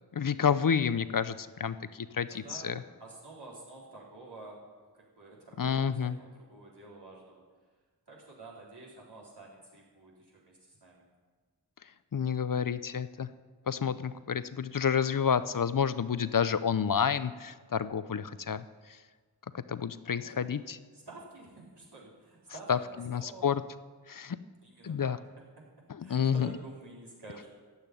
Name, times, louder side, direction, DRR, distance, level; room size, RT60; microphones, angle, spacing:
voice 1, 0.1-2.8 5.6-6.2 12.1-13.3 13.7-18.6 19.5-20.8 22.7-22.8 23.0-23.6 24.1-24.4 24.8-25.2 25.9-26.5, left 7 dB, 55° left, 14 dB, 0.5 m, -29 dB
voice 2, 2.3-2.7 3.0-7.4 8.1-11.0 20.2-20.5 20.9-23.5 24.6-25.2 25.6-25.7 26.0-27.5, right 2 dB, 75° right, -6 dB, 4.1 m, -50 dB
14.0 x 5.8 x 9.8 m, 1.5 s
wide cardioid pair, 50°, 40 cm